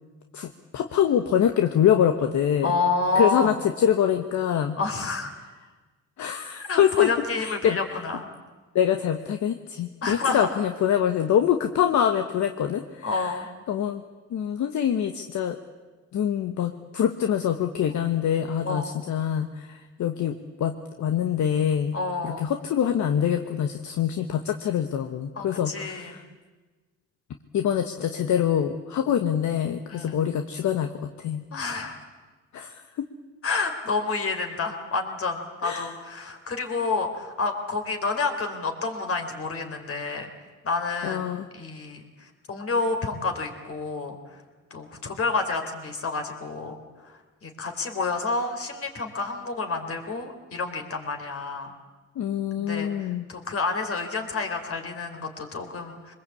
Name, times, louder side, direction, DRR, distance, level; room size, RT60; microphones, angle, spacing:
voice 1, 0.3-2.7 3.1-4.8 6.2-7.1 7.4-7.8 8.7-13.4 13.7-14.0 14.3-15.6 16.1-22.0 22.2-26.2 27.5-31.4 32.5-33.0 35.6-35.9 41.0-41.5 52.2-53.2, left 9 dB, 70° left, 7 dB, 1.3 m, -25 dB
voice 2, 2.6-3.5 4.8-5.3 6.6-8.3 10.0-10.5 13.0-13.5 18.6-18.9 21.9-22.5 25.4-26.2 29.9-30.2 31.5-32.0 33.4-40.3 40.6-41.3 41.5-44.4 44.7-46.8 47.0-51.7 52.6-56.1, left 3 dB, 50° left, 5 dB, 4.0 m, -29 dB
24.0 x 20.5 x 8.5 m, 1.3 s
cardioid pair, 90°, 30 cm